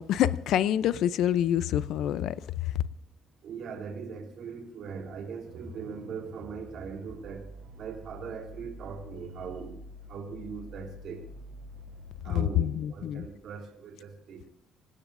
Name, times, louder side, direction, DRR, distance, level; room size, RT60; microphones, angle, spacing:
voice 1, 0.0-2.8 12.3-13.2, left 11 dB, 65° left, 0.6 m, -27 dB
voice 2, 3.4-7.5 7.8-9.8 10.1-11.2 12.2-14.4, right 6 dB, 55° right, 3.9 m, -40 dB
sound 1, 5.4-12.4, equal, 85° right, 7.8 m, -47 dB
27.0 x 17.5 x 2.6 m
cardioid pair, 150°, 0 cm